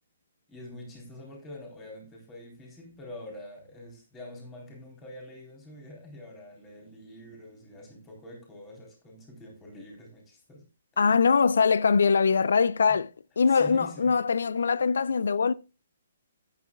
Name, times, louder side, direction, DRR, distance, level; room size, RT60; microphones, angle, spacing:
voice 1, 0.5-10.6 12.9-13.0 13.5-14.2, left 1 dB, 15° left, 3.9 m, -46 dB
voice 2, 11.0-13.1 13.4-15.5, left 5 dB, 80° left, 0.5 m, -22 dB
13.5 x 9.8 x 2.4 m
hypercardioid pair, 160°, 0 cm